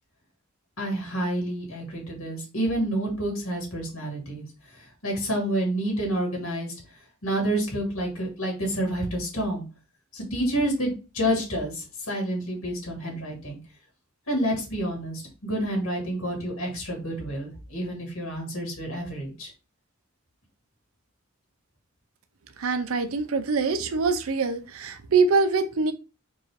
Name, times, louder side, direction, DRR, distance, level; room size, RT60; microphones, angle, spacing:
voice 1, 0.8-4.4 5.0-6.7 7.2-9.6 10.1-13.6 14.3-19.5, right 1 dB, 90° left, 1.9 m, -29 dB
voice 2, 22.6-25.9, right 4 dB, 80° right, 0.5 m, -24 dB
4.5 x 2.6 x 3.2 m
head